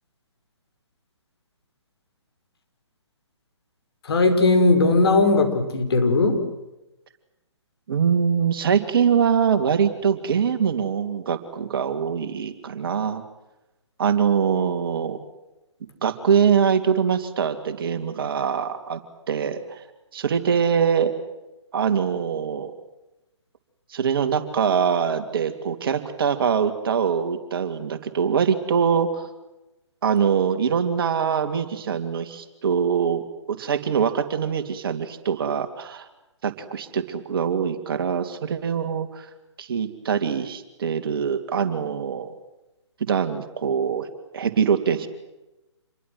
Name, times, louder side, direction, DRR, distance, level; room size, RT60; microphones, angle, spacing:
voice 1, 4.1-6.4, left 3 dB, 55° left, 6 dB, 5.2 m, -18 dB
voice 2, 7.9-13.2 14.0-15.2 16.0-19.0 19.3-19.8 20.1-21.2 21.7-22.7 23.9-29.3 30.0-33.2 33.5-36.1 36.4-39.2 39.6-42.3 43.0-45.1, right 7 dB, 50° right, 8 dB, 2.9 m, -23 dB
28.0 x 22.5 x 7.9 m, 0.98 s
figure-of-eight pair, 135°, 15 cm